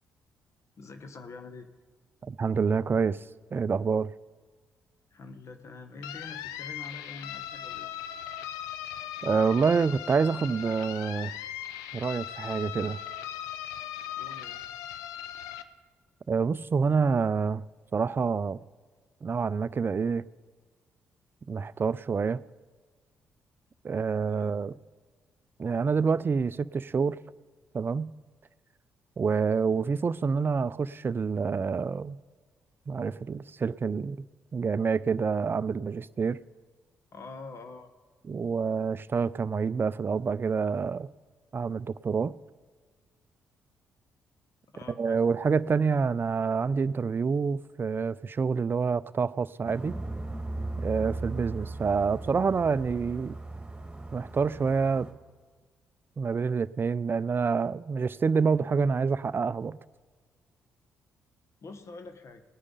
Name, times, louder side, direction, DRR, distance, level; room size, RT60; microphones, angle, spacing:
voice 1, 0.8-1.7 5.1-7.9 14.1-14.7 24.2-24.6 37.1-37.9 44.7-45.2 61.6-62.4, left 3 dB, 55° left, 1.2 m, -45 dB
voice 2, 2.2-3.2 3.5-4.1 9.2-11.4 11.9-13.0 16.3-17.6 17.9-18.6 19.2-20.2 21.5-22.4 23.8-24.7 25.6-27.2 27.7-28.1 29.2-32.2 32.9-34.2 34.5-36.4 38.3-41.1 41.5-42.4 45.0-50.0 50.8-53.3 54.1-55.1 56.2-59.8, right 5 dB, 35° right, 0.4 m, -27 dB
sound 1, 6.0-15.6, left 11 dB, 80° left, 0.5 m, -39 dB
sound 2, 49.6-55.1, right 2 dB, 15° right, 2.2 m, -37 dB
18.5 x 9.6 x 3.9 m
hypercardioid pair, 45°, 6 cm